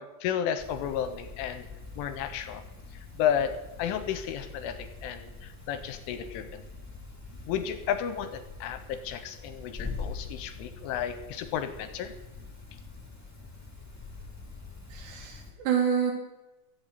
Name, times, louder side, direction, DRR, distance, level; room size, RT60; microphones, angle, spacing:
voice 1, 0.0-1.7 2.0-2.6 2.9-3.5 3.8-6.6 7.5-12.1, left 9 dB, 80° left, 9 dB, 3.1 m, -32 dB
sound 1, 0.6-15.5, left 4 dB, 15° left, 0.6 m, -44 dB
voice 2, 14.9-16.1, right 7 dB, 60° right, 0 dB, 4.9 m, -27 dB
17.0 x 14.0 x 4.1 m, 1.0 s
omnidirectional pair, 6.0 m